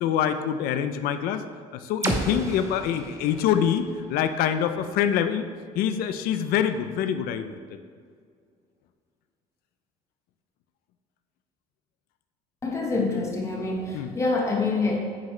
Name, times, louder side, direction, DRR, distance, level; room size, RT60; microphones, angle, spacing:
voice 1, 0.0-1.4 1.7-5.5 5.8-7.8 13.9-14.1, left 9 dB, 80° left, 10 dB, 0.6 m, -25 dB
sound 1, 2.0-5.9, right 2 dB, 20° right, 0.8 m, -34 dB
voice 2, 12.6-15.0, left 3 dB, 20° left, 0 dB, 1.2 m, -26 dB
9.7 x 6.7 x 3.3 m, 2.1 s
cardioid pair, 140°, 15 cm